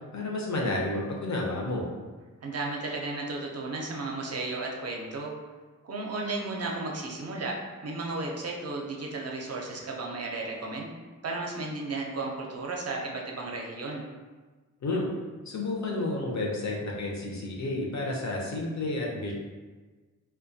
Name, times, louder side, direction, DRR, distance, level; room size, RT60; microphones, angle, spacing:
voice 1, 0.1-1.9 14.8-15.1 15.5-19.3, left 2 dB, 55° left, -1 dB, 0.6 m, -31 dB
voice 2, 2.4-5.3 5.8-7.6 7.8-10.9 11.2-14.0, right 3 dB, 45° right, -1 dB, 0.5 m, -34 dB
2.2 x 2.2 x 2.6 m, 1.3 s
wide cardioid pair, 70°, 34 cm